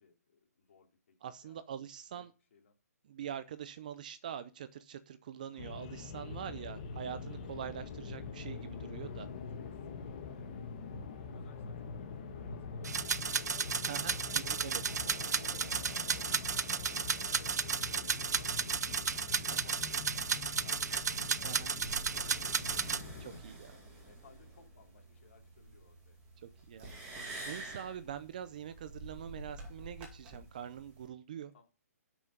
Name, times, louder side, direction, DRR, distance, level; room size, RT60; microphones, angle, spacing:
voice 1, 0.0-1.1 1.4-1.6 2.1-2.2 2.5-2.7 5.5-5.6 9.6-15.5 15.8-17.6 17.9-23.4 23.6-26.2 27.1-27.4 31.5-31.6, left 5 dB, 45° left, 2 dB, 3.2 m, -62 dB
voice 2, 1.2-2.3 3.1-9.3 13.8-14.8 21.4-21.7 23.2-23.7 26.4-26.9 27.5-31.5, right 9 dB, 30° right, 13 dB, 0.5 m, -44 dB
sound 1, 5.6-23.4, left 5 dB, 30° left, 1.3 m, -44 dB
sound 2, 12.8-23.0, right 6 dB, 80° right, 0.6 m, -34 dB
sound 3, 20.9-31.1, right 2 dB, 15° right, 2.3 m, -49 dB
11.5 x 6.2 x 5.2 m, 0.34 s
hypercardioid pair, 170°, 9 cm